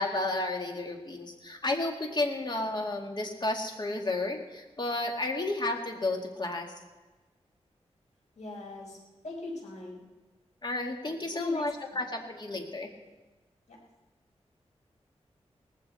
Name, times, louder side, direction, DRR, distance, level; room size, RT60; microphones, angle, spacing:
voice 1, 0.0-6.7 10.6-12.9, left 2 dB, 40° left, 2 dB, 2.2 m, -32 dB
voice 2, 8.4-9.0 9.2-10.0 11.1-11.6 13.7-13.8, left 2 dB, 80° left, -2 dB, 5.1 m, -39 dB
18.5 x 15.5 x 4.3 m, 1.2 s
wide cardioid pair, 80°, 12 cm